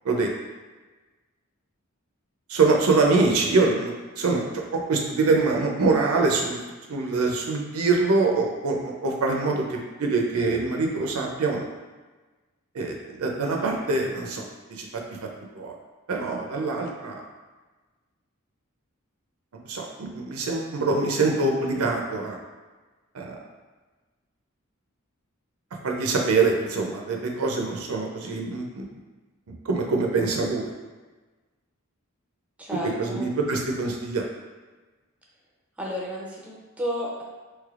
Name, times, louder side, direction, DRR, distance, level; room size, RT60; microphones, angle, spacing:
voice 1, 2.5-4.5 4.7-6.6 6.9-11.7 12.7-14.5 14.8-14.9 15.6-15.7 16.1-17.2 19.7-22.4 23.1-23.3 25.8-28.8 29.7-30.7 33.0-34.2, right 3 dB, 90° right, 1 dB, 0.5 m, -24 dB
voice 2, 32.6-33.2 35.8-37.2, equal, 5° right, -4 dB, 0.5 m, -32 dB
3.2 x 3.2 x 2.4 m, 1.3 s
head